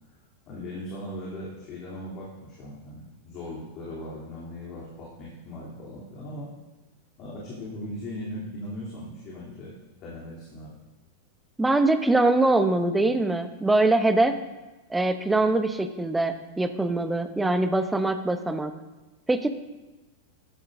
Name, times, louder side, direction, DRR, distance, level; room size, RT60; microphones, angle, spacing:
voice 1, 0.5-6.5 7.2-9.7 10.0-10.7, left 1 dB, 35° left, -6 dB, 3.1 m, -38 dB
voice 2, 11.6-14.4 14.9-18.7 19.3-19.5, right 2 dB, 5° right, 9 dB, 0.8 m, -23 dB
14.5 x 11.0 x 2.7 m, 1.1 s
figure-of-eight pair, 90°, 0 cm